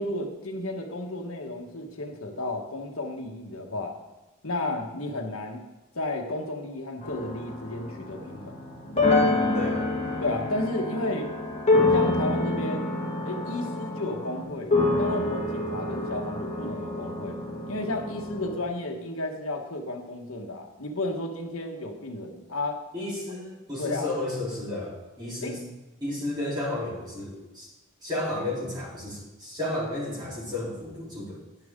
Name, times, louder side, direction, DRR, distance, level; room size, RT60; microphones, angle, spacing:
voice 1, 0.0-3.9 4.4-5.6 5.9-8.5 10.2-11.3 11.9-12.9 13.2-17.4 17.7-22.8 23.8-24.1 25.4-25.6, left 2 dB, 65° left, 1 dB, 1.4 m, -33 dB
sound 1, 7.0-18.6, left 2 dB, 30° left, 1.8 m, -27 dB
voice 2, 9.5-9.9 22.9-25.6 26.0-27.7 28.0-31.4, left 1 dB, 20° right, -7 dB, 3.7 m, -32 dB
11.0 x 10.5 x 3.7 m, 1.1 s
head